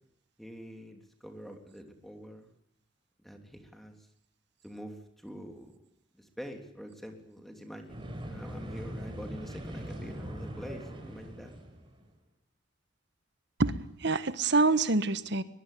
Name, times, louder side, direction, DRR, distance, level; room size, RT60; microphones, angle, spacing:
voice 1, 0.4-2.5 3.2-3.9 4.6-5.8 6.2-11.5, equal, ahead, 4 dB, 3.3 m, -45 dB
sound 1, 7.9-12.1, equal, 25° right, 5.2 m, -41 dB
voice 2, 13.6-15.4, right 3 dB, 60° right, 12 dB, 1.4 m, -26 dB
22.0 x 22.0 x 8.5 m, 0.74 s
head